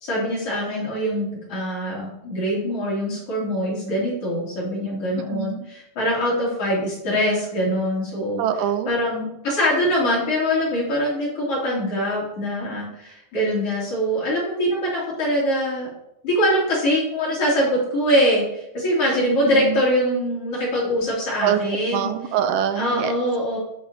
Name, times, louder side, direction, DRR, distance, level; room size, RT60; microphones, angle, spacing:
voice 1, 0.0-8.4 8.9-15.9 16.2-22.1 22.8-23.6, equal, 45° left, -6 dB, 3.8 m, -23 dB
voice 2, 5.3-5.7 8.4-8.9 19.5-19.8 21.4-21.6 21.9-23.1, right 10 dB, 85° right, 9 dB, 2.3 m, -24 dB
9.4 x 7.2 x 2.8 m, 0.81 s
omnidirectional pair, 3.9 m